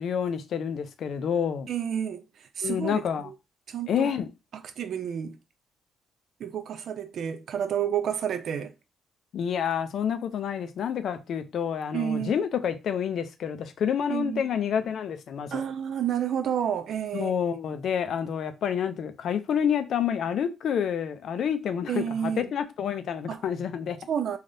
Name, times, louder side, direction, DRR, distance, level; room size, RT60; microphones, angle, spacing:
voice 1, 0.0-1.7 2.6-3.3 3.9-4.3 9.3-15.6 17.1-24.0, left 8 dB, 65° left, 0.4 m, -28 dB
voice 2, 1.7-2.2 2.6-3.3 3.7-4.1 4.5-5.4 6.4-8.7 11.9-12.4 14.1-14.4 15.5-17.3 21.9-22.5 23.3-23.4 24.1-24.4, right 9 dB, 65° right, 0.4 m, -30 dB
3.3 x 2.3 x 2.6 m
cardioid pair, 90°, 0 cm